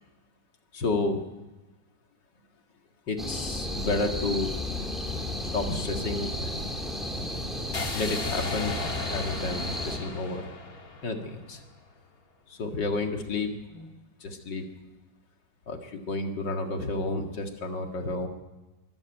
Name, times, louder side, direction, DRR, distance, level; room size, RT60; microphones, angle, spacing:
voice 1, 0.7-1.2 3.1-4.5 5.5-6.8 7.9-8.8 9.1-10.5 11.0-11.6 12.5-13.9 14.2-14.7 15.7-18.3, left 2 dB, 75° left, 4 dB, 2.6 m, -31 dB
sound 1, 3.2-10.0, left 1 dB, ahead, 2.8 m, -33 dB
sound 2, 7.7-11.8, left 4 dB, 55° left, 2.5 m, -36 dB
23.5 x 13.0 x 9.0 m, 1.1 s
omnidirectional pair, 1.9 m